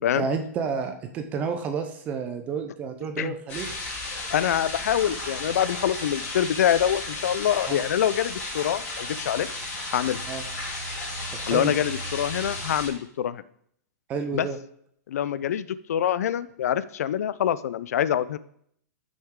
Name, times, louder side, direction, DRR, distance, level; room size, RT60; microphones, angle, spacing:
voice 1, 0.1-3.7 7.7-7.9 10.3-10.4 11.4-11.7 14.1-14.6, right 5 dB, 15° right, 7 dB, 0.5 m, -30 dB
sound 1, 3.5-12.9, left 2 dB, 20° left, 3.8 m, -34 dB
voice 2, 4.1-9.5 9.9-10.2 11.5-13.4 14.3-14.5 15.1-18.4, left 10 dB, 60° left, 16 dB, 0.5 m, -25 dB
14.5 x 6.3 x 3.7 m, 0.69 s
supercardioid pair, 175°, 9 cm